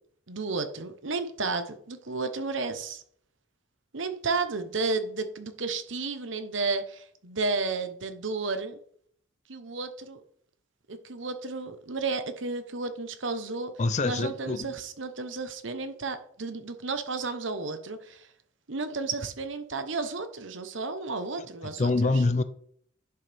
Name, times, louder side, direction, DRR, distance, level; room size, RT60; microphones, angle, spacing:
voice 1, 0.3-3.0 3.9-8.8 9.5-10.2 10.9-18.3 18.7-22.3, right 3 dB, 70° right, 1.0 m, -32 dB
voice 2, 13.8-14.7 21.8-22.4, left 3 dB, 35° left, 0.5 m, -25 dB
10.5 x 6.4 x 3.5 m
head